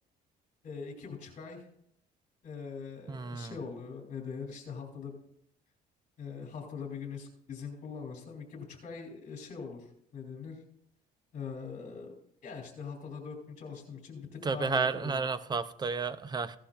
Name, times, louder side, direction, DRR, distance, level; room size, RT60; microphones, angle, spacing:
voice 1, 0.6-1.6 2.4-5.2 6.2-9.8 10.1-10.6 11.3-12.1 12.4-15.2, left 5 dB, 45° left, 1 dB, 3.4 m, -42 dB
voice 2, 3.1-3.6 14.4-16.6, right 4 dB, 25° right, 14 dB, 0.6 m, -32 dB
16.0 x 11.5 x 2.5 m, 0.70 s
cardioid pair, 110°, 17 cm